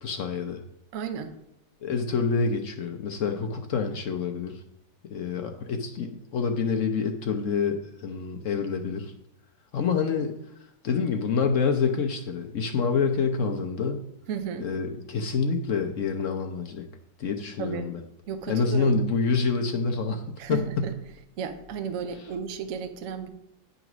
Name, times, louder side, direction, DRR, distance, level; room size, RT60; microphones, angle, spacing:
voice 1, 0.0-0.6 1.8-4.6 5.1-9.1 9.7-10.3 10.8-14.0 14.6-16.9 17.2-18.0 18.5-20.9, left 5 dB, 65° left, 0.8 m, -27 dB
voice 2, 0.9-1.3 14.3-14.7 17.6-17.9 18.3-19.0 20.4-20.9 21.4-23.3, right 7 dB, 60° right, 0.9 m, -33 dB
9.2 x 4.0 x 6.0 m
omnidirectional pair, 2.0 m